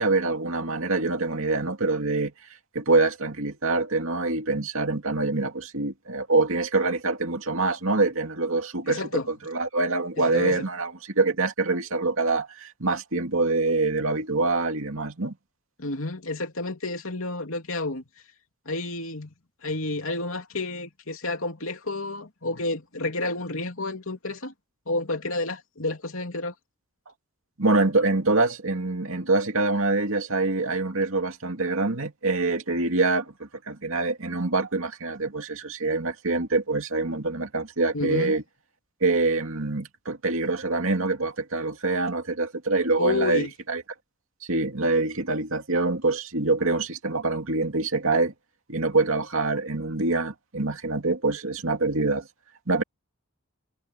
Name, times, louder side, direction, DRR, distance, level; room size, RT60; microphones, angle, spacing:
voice 1, 0.0-2.3 2.7-9.0 9.3-15.4 27.6-38.4 39.0-43.8 44.5-48.3 48.7-52.3 52.7-52.8, right 3 dB, 65° right, 2.6 m, -25 dB
voice 2, 8.9-9.3 10.2-10.6 15.8-18.0 18.7-19.3 19.6-24.5 24.9-26.5 37.9-38.4 43.0-43.5, left 2 dB, 70° left, 3.1 m, -30 dB
head